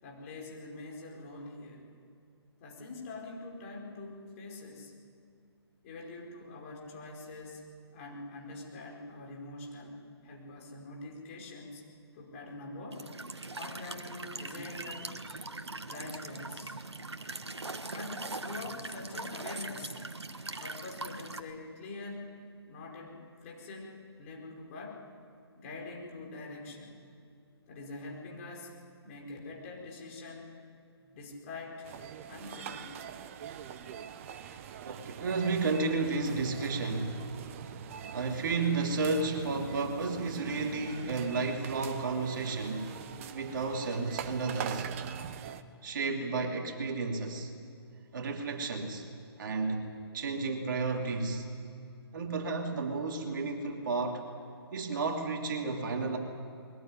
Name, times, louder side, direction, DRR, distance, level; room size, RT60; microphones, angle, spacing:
voice 1, 0.0-1.9 2.6-4.9 5.8-11.8 12.1-13.1 13.5-15.1 15.9-16.8 17.9-20.0 20.6-22.4 22.7-25.0 25.5-27.0 27.7-28.7 29.0-30.5 31.0-31.9 32.3-33.2, left 3 dB, 30° left, -1 dB, 5.0 m, -44 dB
Walk footsteps / Chirp tweet / Stream, 12.9-21.4, right 3 dB, 80° right, 1.5 m, -41 dB
sound 1, 31.8-45.6, right 9 dB, 30° right, 1.0 m, -43 dB
voice 2, 34.8-37.2 38.1-42.9 43.3-44.9 45.8-47.5 48.1-49.0 49.4-51.4 52.1-54.3 54.7-56.2, right 3 dB, 50° right, 2 dB, 3.1 m, -32 dB
22.0 x 19.0 x 9.6 m, 2.5 s
figure-of-eight pair, 140°, 14 cm